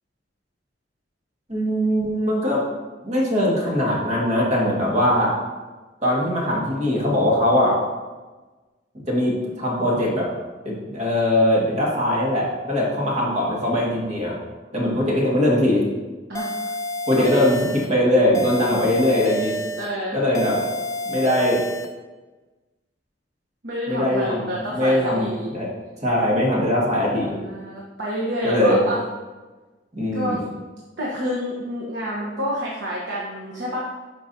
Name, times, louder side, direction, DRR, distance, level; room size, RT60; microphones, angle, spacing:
voice 1, 1.5-2.6 3.0-5.3 6.0-7.8 9.1-10.3 10.6-14.4 14.7-15.8 17.1-19.6 20.1-20.6 21.1-21.6 23.9-25.7 26.0-27.4 28.4-28.8 29.9-30.4, left 1 dB, 40° right, -3 dB, 2.0 m, -21 dB
voice 2, 12.7-13.2 14.7-15.1 16.3-16.7 17.1-17.5 19.8-20.2 23.6-25.5 27.0-29.0 30.1-30.5 31.0-33.8, equal, 75° right, -4 dB, 1.2 m, -29 dB
sound 1, 16.3-17.9 18.3-19.9 20.3-21.9, equal, 20° left, 0.4 m, -29 dB
11.0 x 5.1 x 2.8 m, 1.2 s
head